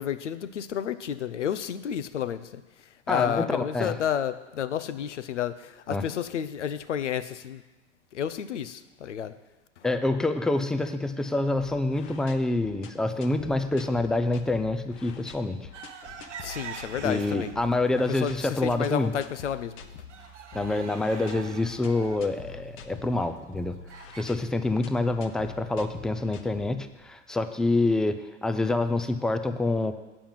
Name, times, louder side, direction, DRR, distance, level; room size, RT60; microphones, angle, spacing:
voice 1, 0.0-2.6 3.1-7.6 8.1-9.3 16.4-17.5 18.1-18.3 18.6-19.7, left 9 dB, 90° left, 13 dB, 0.6 m, -31 dB
voice 2, 3.1-4.0 5.9-6.1 9.8-15.7 17.0-19.1 20.5-23.8 24.2-30.0, left 2 dB, ahead, 9 dB, 0.3 m, -27 dB
sound 1, 11.6-27.1, left 6 dB, 40° left, 0.9 m, -46 dB
sound 2, 15.7-17.7 18.2-18.8 19.2-19.3 19.6-24.2, right 7 dB, 85° right, 0.9 m, -44 dB
8.9 x 5.8 x 7.2 m, 1.1 s
hypercardioid pair, 95°, 35 cm